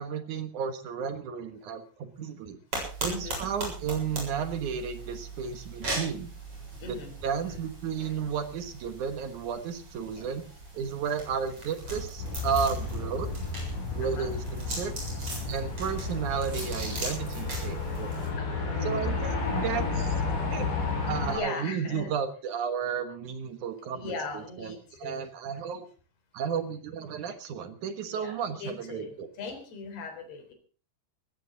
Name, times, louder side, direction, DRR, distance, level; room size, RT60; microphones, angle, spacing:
voice 1, 0.0-2.6 3.0-6.3 6.9-10.4 10.7-13.3 13.9-14.9 15.5-18.2 18.8-20.2 20.5-20.7 21.0-25.9 26.3-29.3, right 7 dB, 65° right, 9 dB, 2.0 m, -33 dB
sound 1, 2.7-18.3, right 2 dB, 30° right, 8.3 m, -39 dB
voice 2, 3.1-3.4 6.8-7.2 7.5-7.6 14.0-14.3 18.4-18.7 21.2-22.1 23.9-25.3 28.1-30.5, left 3 dB, 65° left, 7 dB, 5.7 m, -39 dB
sound 2, 12.2-21.4, left 4 dB, 85° left, 7.0 m, -32 dB
20.0 x 15.5 x 3.9 m, 0.37 s
omnidirectional pair, 5.1 m